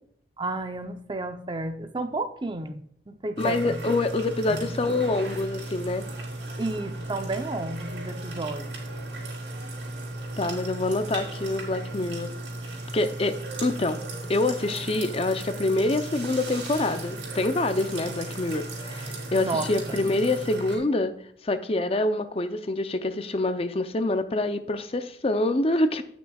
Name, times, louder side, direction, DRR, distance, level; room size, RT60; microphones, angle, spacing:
voice 1, 0.4-3.8 4.5-5.0 6.6-8.7 19.4-20.0, right 2 dB, 25° right, 8 dB, 0.7 m, -32 dB
voice 2, 3.4-6.0 10.4-12.3 12.9-14.0 14.3-21.1 21.4-26.0, left 2 dB, 35° left, 10 dB, 0.5 m, -26 dB
sound 1, 3.4-20.8, right 2 dB, 80° right, 3.3 m, -36 dB
16.5 x 6.1 x 2.3 m, 0.66 s
head